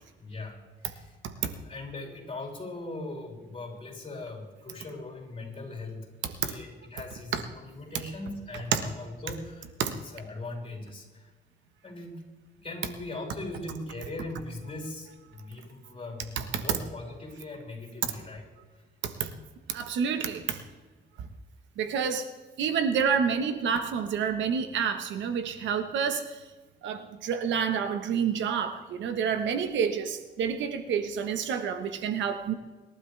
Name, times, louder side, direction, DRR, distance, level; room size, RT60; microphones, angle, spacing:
voice 1, 0.2-0.6 0.8-6.1 6.4-11.3 11.8-18.4 18.7-18.8 29.4-29.5, left 2 dB, 30° left, -1 dB, 6.0 m, -40 dB
voice 2, 19.7-20.6 21.8-22.3 22.6-26.3 26.8-32.5, right 7 dB, 85° right, 8 dB, 1.4 m, -28 dB
26.0 x 12.0 x 3.5 m, 1.3 s
cardioid pair, 115°, 19 cm